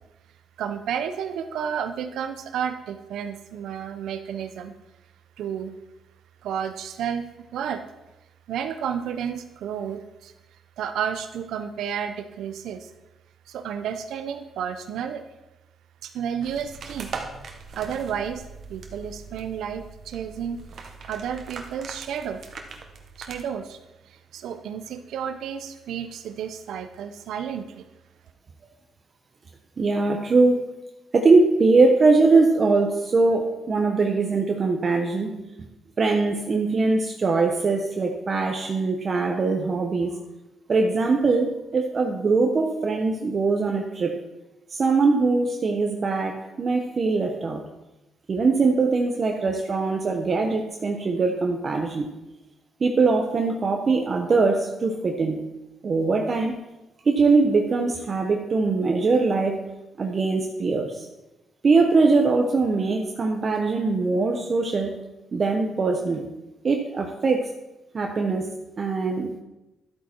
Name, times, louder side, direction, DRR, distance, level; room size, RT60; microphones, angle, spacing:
voice 1, 0.6-4.7 5.4-5.8 6.4-7.8 8.5-10.3 10.8-12.9 13.5-15.2 16.0-17.1 17.8-22.4 23.2-23.8 24.0-27.9, right 8 dB, 85° right, 8 dB, 0.7 m, -31 dB
sound 1, 16.4-23.4, right 4 dB, 55° right, 1.4 m, -40 dB
voice 2, 29.8-30.7 31.1-35.7 36.0-40.2 40.7-44.2 44.7-47.6 48.3-52.1 52.8-55.4 55.8-56.6 57.0-59.6 60.0-61.1 61.6-65.0 65.3-66.3 66.6-67.5 67.9-69.4, right 3 dB, 40° right, 3 dB, 1.0 m, -22 dB
12.0 x 8.5 x 4.5 m, 0.99 s
cardioid pair, 120°, 0 cm